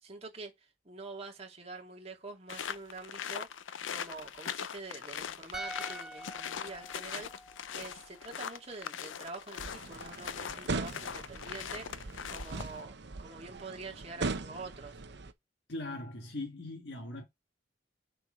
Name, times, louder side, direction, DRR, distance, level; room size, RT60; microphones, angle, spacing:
voice 1, 0.0-3.5 3.9-7.3 7.7-12.0 12.3-15.0, right 3 dB, 35° right, 2.5 m, -46 dB
sound 1, 2.5-12.8, left 8 dB, 85° left, 0.5 m, -41 dB
sound 2, 5.5-8.8 9.0-9.2, right 1 dB, 5° right, 0.5 m, -47 dB
sound 3, 9.6-15.3, right 3 dB, 65° right, 0.9 m, -40 dB
voice 2, 15.7-17.3, left 2 dB, 65° left, 1.7 m, -40 dB
6.7 x 4.5 x 5.0 m
head